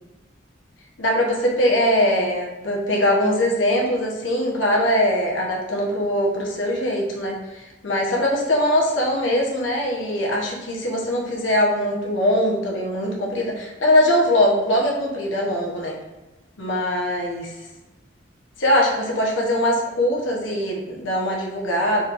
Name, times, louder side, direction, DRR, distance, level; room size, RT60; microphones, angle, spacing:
voice 1, 1.0-16.0 16.6-17.6 18.6-22.0, left 1 dB, 85° left, -2 dB, 1.0 m, -21 dB
4.1 x 2.6 x 4.7 m, 1.1 s
head